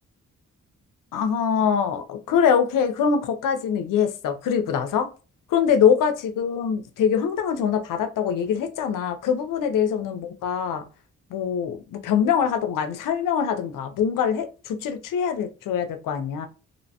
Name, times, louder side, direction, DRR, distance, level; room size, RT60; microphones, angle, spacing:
voice 1, 1.1-5.1 5.5-10.8 11.3-16.5, left 7 dB, 80° left, 0.5 m, -23 dB
2.9 x 2.1 x 2.7 m
cardioid pair, 55°, 32 cm